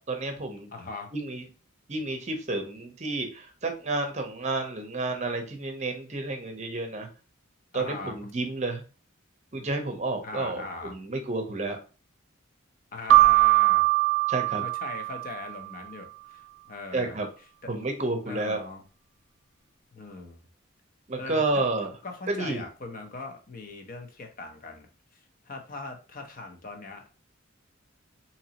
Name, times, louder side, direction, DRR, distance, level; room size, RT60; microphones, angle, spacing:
voice 1, 0.1-0.7 1.1-1.5 1.9-7.1 7.7-8.8 9.5-11.8 14.3-14.6 16.9-17.3 17.7-18.6 21.1-21.9 22.3-22.6, right 2 dB, 35° right, 5 dB, 0.7 m, -30 dB
voice 2, 0.7-1.1 7.7-8.2 10.2-11.0 12.9-13.9 14.6-17.2 18.3-18.8 19.9-20.4 21.2-21.6 22.0-24.9 25.5-27.0, left 3 dB, 40° left, 3 dB, 0.7 m, -40 dB
Keyboard (musical), 13.1-15.6, right 18 dB, 70° right, 0.3 m, -21 dB
3.9 x 2.9 x 2.9 m, 0.35 s
head